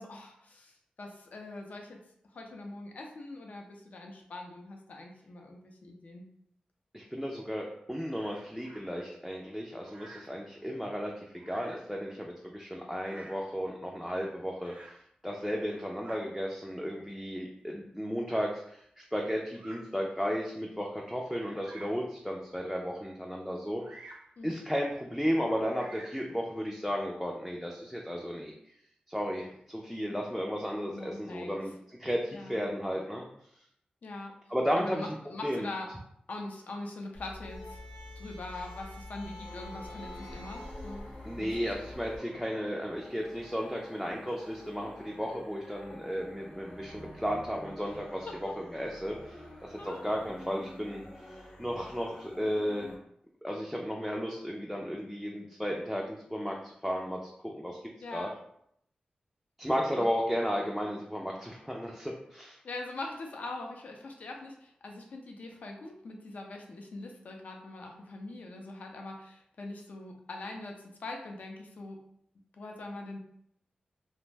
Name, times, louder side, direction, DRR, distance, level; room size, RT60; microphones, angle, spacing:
voice 1, 0.0-2.0 2.3-6.2 24.4-24.6 30.9-31.6 32.3-32.6 34.0-34.3 34.8-35.9 36.3-37.8 38.2-41.1 41.4-41.7 48.3-48.5 49.8-50.0 58.0-58.3 62.6-72.0 72.5-73.2, left 2 dB, 65° left, 2 dB, 0.5 m, -42 dB
voice 2, 6.9-23.8 24.4-28.5 29.1-33.2 34.5-35.1 35.4-35.7 41.2-48.3 48.7-52.9 53.4-57.8 58.1-58.3 59.6-62.6, equal, ahead, -1 dB, 0.3 m, -34 dB
Bird vocalization bird call bird song, 8.1-8.8 9.8-10.4 11.4-11.9 12.9-13.5 14.6-15.0 15.6-16.2 17.1-17.2 18.2-18.5 19.5-19.8 20.5-20.6 21.3-22.0 23.8-24.3 25.4-26.3, right 2 dB, 70° right, 0.5 m, -51 dB
sound 1, 37.1-42.2, left 2 dB, 85° left, 0.9 m, -45 dB
sound 2, 39.3-52.9, equal, 35° left, 0.8 m, -49 dB
2.5 x 2.0 x 3.2 m, 0.71 s
wide cardioid pair, 100°, 3 cm